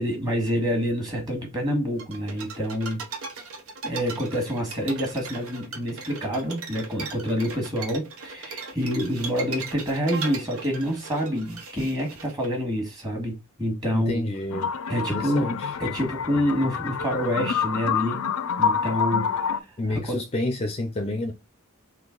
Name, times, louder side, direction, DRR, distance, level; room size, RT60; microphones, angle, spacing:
voice 1, 0.0-3.0 3.8-14.2 14.9-15.5 15.8-18.3 18.6-20.2, equal, 20° right, 1.5 m, -27 dB
sound 1, 2.0-12.5, right 4 dB, 75° right, 0.9 m, -38 dB
voice 2, 13.9-14.7 15.1-15.7 19.8-21.3, left 2 dB, 30° left, 0.5 m, -29 dB
sound 2, 14.5-19.6, left 6 dB, 85° left, 0.5 m, -27 dB
3.8 x 3.2 x 3.7 m
head